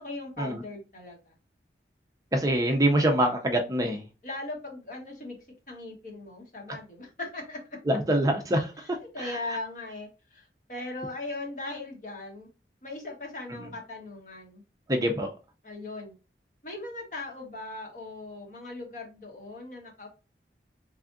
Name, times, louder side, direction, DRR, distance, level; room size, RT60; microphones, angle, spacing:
voice 1, 0.0-1.3 4.2-5.4 5.7-7.6 9.0-12.5 12.8-14.6 15.6-16.1 16.6-20.1, left 2 dB, 45° left, 1.2 m, -39 dB
voice 2, 2.3-4.0 7.9-9.4 13.5-13.7 14.9-15.3, right 1 dB, 20° right, 0.4 m, -25 dB
3.5 x 3.4 x 2.5 m
head